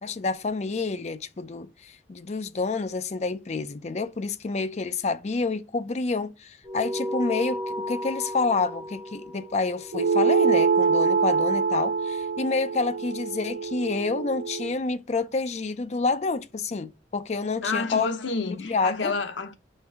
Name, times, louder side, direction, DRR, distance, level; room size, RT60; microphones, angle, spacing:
voice 1, 0.0-18.1 18.6-19.1, left 4 dB, 35° left, 0.4 m, -28 dB
sound 1, 6.6-11.4, left 1 dB, ahead, 2.1 m, -35 dB
sound 2, 9.9-14.7, right 5 dB, 80° right, 0.4 m, -24 dB
voice 2, 17.6-19.6, left 4 dB, 80° left, 0.8 m, -29 dB
4.6 x 3.4 x 3.4 m
head